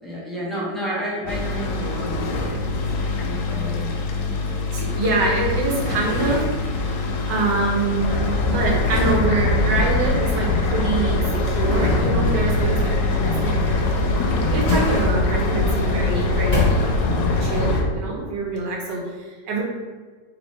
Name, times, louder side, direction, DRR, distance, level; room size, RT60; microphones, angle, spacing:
voice 1, 0.0-2.8 3.1-3.9, equal, ahead, -7 dB, 0.6 m, -31 dB
sound 1, 1.3-17.8, left 3 dB, 70° left, 0.8 m, -26 dB
voice 2, 4.7-17.1 17.4-19.6, right 3 dB, 80° right, -2 dB, 1.5 m, -25 dB
sound 2, 8.0-17.9, left 1 dB, 90° left, 1.3 m, -23 dB
sound 3, 14.1-15.5 16.0-17.3 17.7-17.8, left 2 dB, 40° left, 1.3 m, -27 dB
3.5 x 3.0 x 4.2 m, 1.5 s
omnidirectional pair, 1.9 m